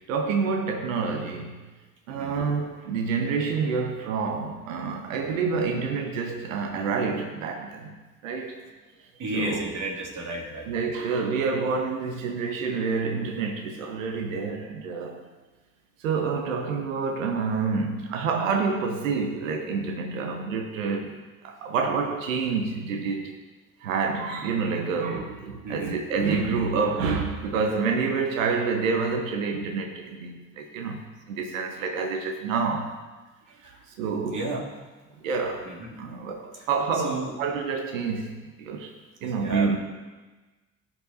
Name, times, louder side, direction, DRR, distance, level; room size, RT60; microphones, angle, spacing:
voice 1, 0.0-1.6 2.1-7.9 8.2-8.6 9.3-9.6 10.7-15.2 16.0-23.3 23.8-32.9 34.0-34.4 35.2-35.7 36.0-38.9 39.2-39.8, right 5 dB, 80° right, 5 dB, 1.0 m, -28 dB
voice 2, 2.1-2.4 5.1-5.3 9.2-10.9 25.6-26.0 33.5-33.8 34.3-34.7 35.6-36.0 36.5-36.7 36.9-37.3 39.2-39.8, right 2 dB, 50° right, 0 dB, 2.4 m, -33 dB
17.5 x 5.9 x 4.0 m, 1.2 s
figure-of-eight pair, 45°, 39 cm